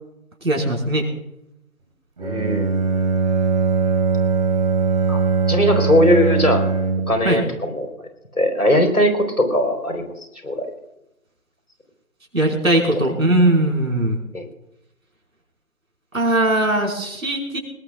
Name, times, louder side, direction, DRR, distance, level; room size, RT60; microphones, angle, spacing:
voice 1, 0.4-1.1 7.2-7.4 12.3-14.2 16.1-17.6, right 1 dB, 70° right, 0 dB, 5.2 m, -19 dB
voice 2, 2.2-2.9 5.1-5.2 5.5-6.7 7.1-8.1 8.4-10.1 10.4-10.7 14.3-14.4, left 1 dB, 90° left, 5 dB, 4.2 m, -19 dB
Bowed string instrument, 2.2-7.3, right 5 dB, 30° right, 2.7 m, -20 dB
21.0 x 20.5 x 2.4 m, 0.86 s
figure-of-eight pair, 160°, 43 cm